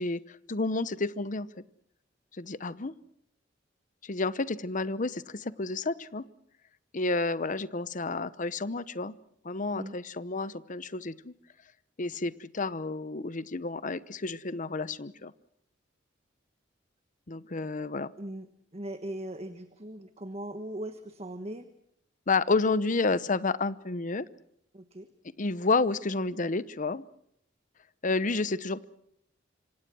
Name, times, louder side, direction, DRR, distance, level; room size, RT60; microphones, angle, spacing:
voice 1, 0.0-1.6 2.4-2.9 4.0-6.2 6.9-9.1 9.4-11.3 12.0-15.3 17.3-18.1 22.3-24.3 25.4-27.0 28.0-28.8, left 3 dB, 45° left, 16 dB, 0.9 m, -30 dB
voice 2, 18.2-21.7 24.7-25.1, right 1 dB, 35° right, 9 dB, 1.3 m, -39 dB
26.5 x 25.5 x 6.2 m, 0.73 s
head